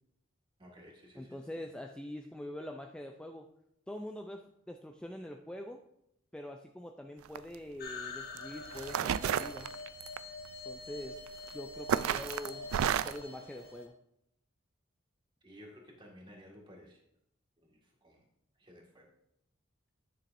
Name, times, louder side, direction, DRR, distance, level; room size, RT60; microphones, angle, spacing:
voice 1, 0.6-1.7 15.4-17.0 17.6-18.2 18.6-19.1, equal, 25° right, -1 dB, 1.8 m, -55 dB
voice 2, 1.2-3.5 3.9-5.8 6.3-9.7 10.7-11.2 11.5-13.9, left 1 dB, 5° left, 3 dB, 0.4 m, -44 dB
sound 1, 7.3-7.6 8.4-8.5 8.8-10.2 11.3-11.5 11.9-13.2, right 9 dB, 85° right, 0.3 m, -31 dB
sound 2, 7.8-13.9, left 3 dB, 50° left, 1.2 m, -45 dB
9.5 x 7.1 x 2.6 m, 0.78 s
head